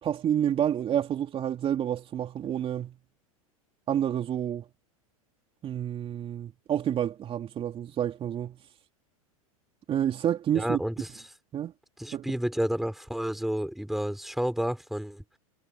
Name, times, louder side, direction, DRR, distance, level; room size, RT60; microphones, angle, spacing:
voice 1, 0.0-3.0 3.9-4.7 5.6-8.6 9.9-10.8 11.5-11.7 12.1-12.3, right 10 dB, 30° right, 2.9 m, -29 dB
voice 2, 10.5-11.2 12.0-15.2, equal, ahead, 4.1 m, -30 dB
hypercardioid pair, 95°, 18 cm